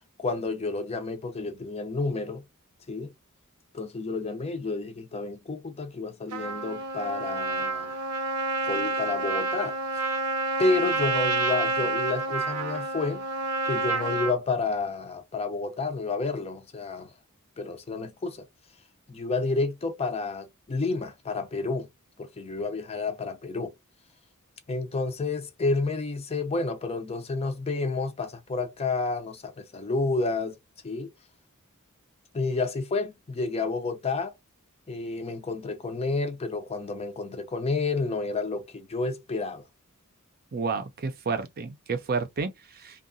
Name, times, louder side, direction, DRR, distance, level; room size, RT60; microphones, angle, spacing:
voice 1, 0.2-2.4 2.9-3.1 3.7-7.9 8.6-10.2 10.6-13.2 13.6-17.1 17.6-18.5 19.1-21.9 22.2-23.7 24.7-30.6 30.8-31.1 32.3-34.3 34.9-39.6, left 3 dB, 30° left, 0.5 m, -30 dB
Trumpet, 6.3-14.4, right 2 dB, 90° right, 0.6 m, -29 dB
voice 2, 40.5-43.0, right 4 dB, 45° right, 0.5 m, -31 dB
2.7 x 2.3 x 2.5 m
head